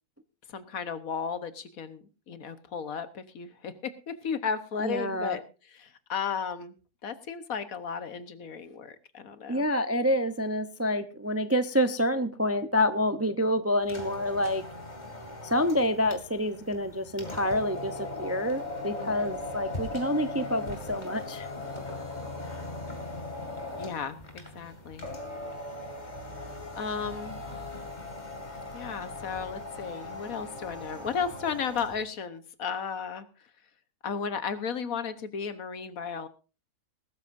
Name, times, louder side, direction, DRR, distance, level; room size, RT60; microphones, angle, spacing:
voice 1, 0.5-6.7 7.0-9.7 19.0-19.4 23.8-25.1 26.7-27.6 28.7-33.3 34.0-36.3, left 6 dB, 65° left, 12 dB, 1.5 m, -34 dB
voice 2, 4.8-5.4 9.5-14.6 15.4-21.5, left 1 dB, 15° right, 10 dB, 0.5 m, -27 dB
sound 1, 13.8-32.0, left 2 dB, 30° left, 2.6 m, -39 dB
20.0 x 13.0 x 2.6 m, 0.32 s
omnidirectional pair, 1.6 m